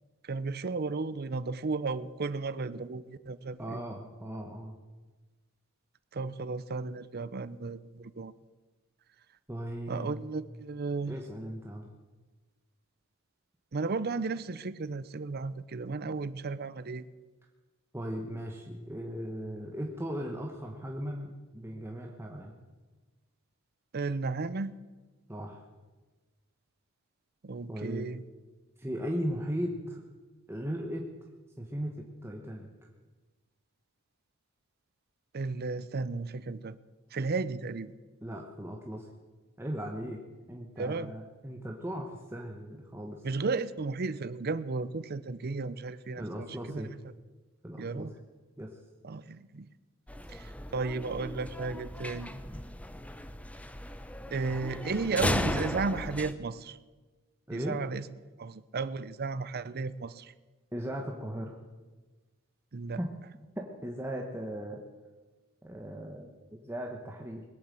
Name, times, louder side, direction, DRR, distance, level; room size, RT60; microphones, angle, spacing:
voice 1, 0.2-3.8 6.1-8.3 9.9-11.2 13.7-17.1 23.9-24.7 27.4-28.2 35.3-36.8 37.1-37.9 40.8-41.1 43.2-47.0 47.8-48.1 49.0-49.7 50.3-52.3 54.3-56.8 57.5-58.0 58.4-60.3 62.7-63.0, right 4 dB, 50° right, 15 dB, 0.6 m, -34 dB
voice 2, 3.6-4.7 9.5-10.3 11.1-11.9 17.9-22.5 25.3-25.6 27.7-28.1 28.8-30.0 30.5-31.1 31.6-32.7 38.2-39.1 39.6-40.2 40.5-43.2 46.2-46.9 47.6-48.1 48.6-48.7 57.5-57.8 60.7-61.6 63.0-63.1 63.8-64.8 65.6-67.4, equal, 10° right, 0 dB, 1.1 m, -37 dB
sound 1, 50.1-56.3, left 1 dB, 5° left, 0.7 m, -36 dB
20.5 x 8.8 x 7.6 m, 1.3 s
head